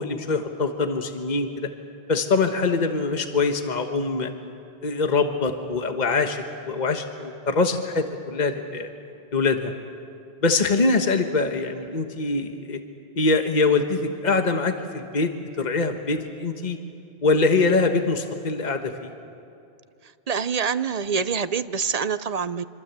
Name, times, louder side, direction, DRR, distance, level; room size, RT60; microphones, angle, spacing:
voice 1, 0.0-1.7 2.1-4.3 4.8-8.9 9.3-9.7 10.4-12.8 13.2-16.8 17.2-19.1, left 3 dB, 45° left, 6 dB, 1.4 m, -23 dB
voice 2, 20.0-22.6, right 6 dB, 45° right, 14 dB, 0.7 m, -26 dB
26.0 x 25.5 x 8.2 m, 2.6 s
omnidirectional pair, 1.1 m